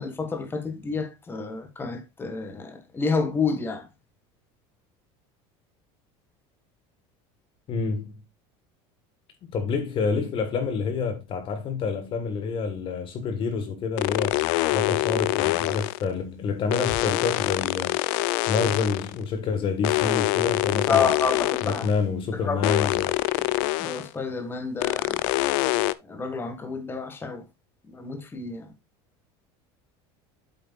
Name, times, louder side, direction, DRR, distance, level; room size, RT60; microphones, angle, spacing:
voice 1, 0.0-3.9 20.9-21.9 22.3-22.9 23.3-23.5 23.8-25.2 26.0-27.4 27.9-28.7, left 5 dB, 15° left, 1.7 m, -29 dB
voice 2, 7.7-8.1 9.4-14.4 14.7-18.0 18.5-21.1 21.6-23.1, left 5 dB, 40° left, 1.6 m, -28 dB
sound 1, 14.0-16.1 16.7-19.2 19.8-22.0 22.6-24.1 24.8-25.9, left 19 dB, 70° left, 0.5 m, -25 dB
8.3 x 7.8 x 2.4 m
supercardioid pair, 140°, 13 cm